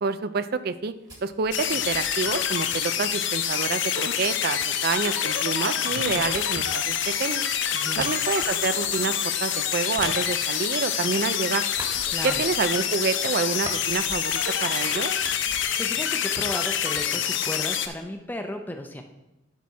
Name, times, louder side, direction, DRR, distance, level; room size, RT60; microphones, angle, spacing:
voice 1, 0.0-0.9 1.2-7.4 8.0-11.6 12.2-15.1, right 5 dB, 50° right, 13 dB, 0.4 m, -28 dB
sound 1, 0.8-3.7 4.6-11.3 11.6-14.7 15.0-16.7 16.9-18.3, right 1 dB, 20° right, 1.5 m, -44 dB
sound 2, 1.5-17.9, left 9 dB, 65° left, 0.6 m, -26 dB
voice 2, 7.7-8.1 12.1-12.4 15.8-19.0, left 1 dB, 10° left, 4 dB, 0.6 m, -34 dB
sound 3, 14.3-15.9, left 4 dB, 40° left, 1.2 m, -49 dB
11.5 x 4.2 x 4.7 m, 0.98 s
head